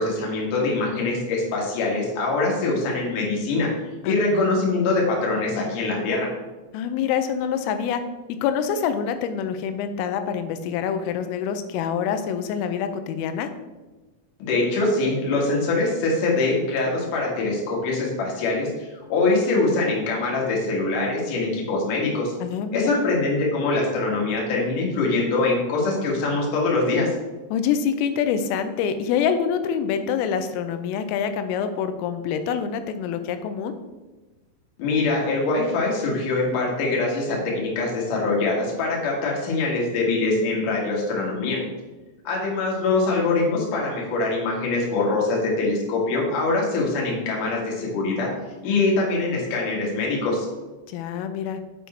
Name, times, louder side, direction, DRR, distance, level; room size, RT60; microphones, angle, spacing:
voice 1, 0.0-3.7 4.0-6.3 14.4-18.7 19.1-22.3 22.7-27.1 34.8-41.6 42.2-48.3 48.6-50.5, left 3 dB, 55° left, -3 dB, 2.6 m, -23 dB
voice 2, 4.0-4.4 6.7-8.0 8.4-13.5 22.4-23.0 27.5-33.8 50.9-51.6, left 7 dB, 90° left, 9 dB, 3.3 m, -26 dB
7.3 x 5.5 x 4.3 m, 1.2 s
omnidirectional pair, 5.8 m